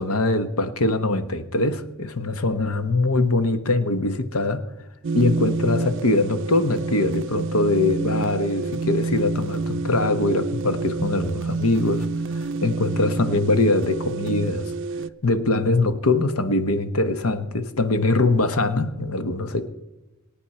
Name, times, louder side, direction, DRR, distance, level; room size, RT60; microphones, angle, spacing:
voice 1, 0.0-4.7 5.1-12.1 12.6-14.7 15.2-19.7, left 2 dB, 75° left, 1.1 m, -22 dB
sound 1, 5.0-15.1, right 3 dB, 55° right, 0.5 m, -28 dB
23.0 x 8.9 x 4.3 m
head